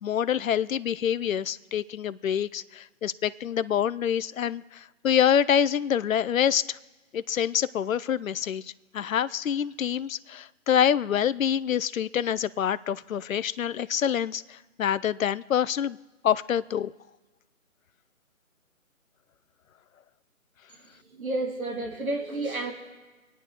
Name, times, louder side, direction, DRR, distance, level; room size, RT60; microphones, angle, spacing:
voice 1, 0.0-6.8 7.1-16.0 16.2-16.9, left 9 dB, 70° left, 17 dB, 0.5 m, -26 dB
voice 2, 21.2-22.7, right 2 dB, 75° right, 1 dB, 2.6 m, -30 dB
26.0 x 9.2 x 3.0 m, 1.2 s
figure-of-eight pair, 160°, 42 cm